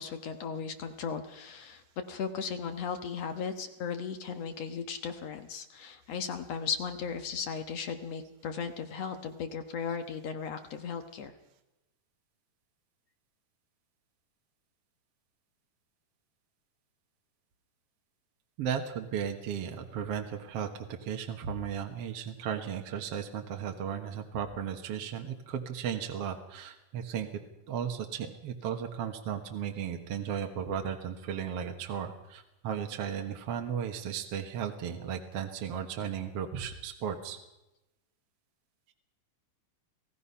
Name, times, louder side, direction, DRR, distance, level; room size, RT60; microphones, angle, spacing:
voice 1, 0.0-1.8 2.1-11.3, left 6 dB, 60° left, 7 dB, 2.1 m, -36 dB
voice 2, 18.6-27.3 27.7-37.4, right 8 dB, 55° right, 4 dB, 2.1 m, -35 dB
28.5 x 18.0 x 5.7 m, 0.96 s
omnidirectional pair, 3.7 m